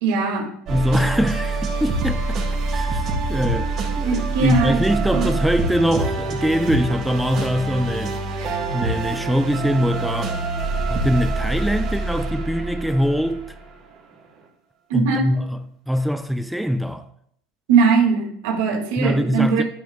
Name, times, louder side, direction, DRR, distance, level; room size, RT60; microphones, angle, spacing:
voice 1, 0.0-0.5 4.0-4.8 5.1-5.3 8.4-8.6 14.9-15.3 17.7-19.6, right 5 dB, 75° right, 2.3 m, -20 dB
voice 2, 0.7-2.4 2.7-3.0 3.3-3.7 4.0-8.2 8.7-10.4 10.9-13.4 14.9-15.6 15.9-17.0 19.0-19.6, equal, ahead, 0.5 m, -22 dB
sound 1, 0.7-13.8, right 3 dB, 45° right, 4.2 m, -25 dB
10.5 x 10.5 x 2.4 m
supercardioid pair, 115°, 0 cm